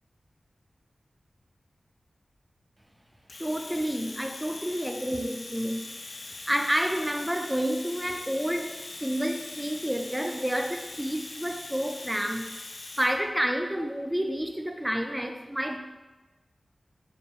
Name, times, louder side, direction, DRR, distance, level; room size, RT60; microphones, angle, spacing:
Domestic sounds home sounds, 3.3-13.2, left 2 dB, 75° left, 0.4 m, -41 dB
voice 1, 3.4-5.9 6.5-12.5 13.0-15.8, equal, 10° right, 5 dB, 0.3 m, -29 dB
3.3 x 2.3 x 4.3 m, 1.2 s
wide cardioid pair, 80°, 0 cm